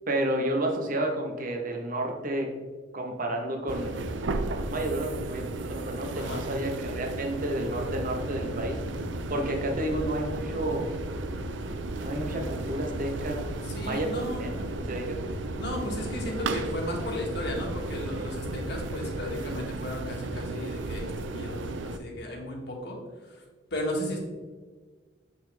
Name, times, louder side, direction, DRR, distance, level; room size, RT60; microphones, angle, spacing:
voice 1, 0.1-2.5 2.9-4.0 4.5-8.8 9.3-10.9 12.0-13.5 13.8-15.2, right 1 dB, 45° right, 2 dB, 1.2 m, -31 dB
sound 1, 3.7-22.0, right 3 dB, 70° right, 0.5 m, -35 dB
sound 2, 7.5-19.4, equal, 15° left, 0.7 m, -40 dB
voice 2, 13.6-14.7 15.6-23.4 23.7-24.2, left 1 dB, 60° left, -1 dB, 1.8 m, -35 dB
7.8 x 5.6 x 3.5 m, 1.4 s
head